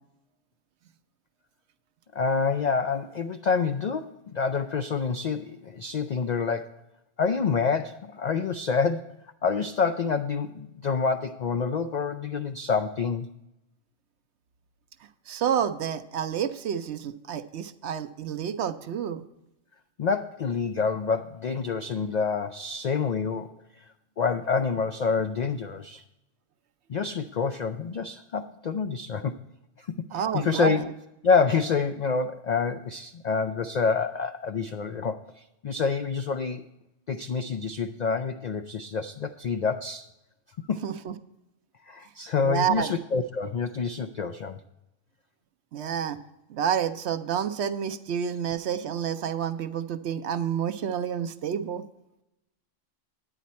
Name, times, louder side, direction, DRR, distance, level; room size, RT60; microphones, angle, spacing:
voice 1, 2.1-6.8 7.2-9.1 9.4-13.3 20.0-23.8 24.2-26.0 26.9-29.3 29.8-29.9 30.1-30.8 31.2-36.6 37.1-40.1 40.6-40.8 41.9-44.6, left 5 dB, 70° left, 7 dB, 0.4 m, -27 dB
voice 2, 15.3-19.2 30.1-30.9 40.8-41.1 42.4-42.9 45.7-46.2 46.5-51.8, right 8 dB, 65° right, 11 dB, 0.8 m, -29 dB
10.0 x 9.2 x 4.2 m, 0.90 s
omnidirectional pair, 1.3 m